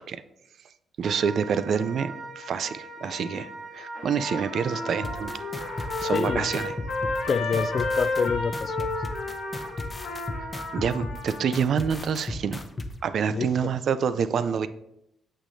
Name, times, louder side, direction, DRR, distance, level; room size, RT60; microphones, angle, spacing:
Wind instrument woodwind instrument, 1.0-10.9, right 2 dB, 40° right, 2.0 m, -41 dB
voice 1, 1.0-5.4 5.8-6.7 10.7-12.6 13.0-14.7, right 7 dB, 65° right, 13 dB, 0.4 m, -27 dB
Trumpet, 3.9-11.6, left 3 dB, 75° left, 1.5 m, -32 dB
sound 1, 5.0-12.9, left 2 dB, 30° left, 0.7 m, -34 dB
voice 2, 6.0-6.7 7.3-9.0 13.3-13.7, left 5 dB, 50° left, 14 dB, 0.3 m, -28 dB
6.5 x 6.1 x 2.7 m, 0.81 s
cardioid pair, 75°, 0 cm